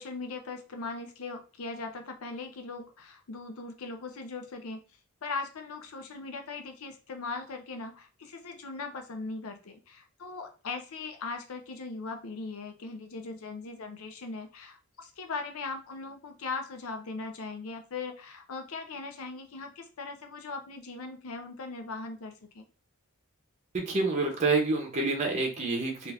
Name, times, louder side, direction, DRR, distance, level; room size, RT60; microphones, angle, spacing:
voice 1, 0.0-4.9 5.2-22.7, left 3 dB, 75° left, 6 dB, 0.6 m, -39 dB
voice 2, 23.7-26.1, right 3 dB, 35° right, 1 dB, 0.6 m, -28 dB
2.5 x 2.4 x 3.3 m, 0.34 s
head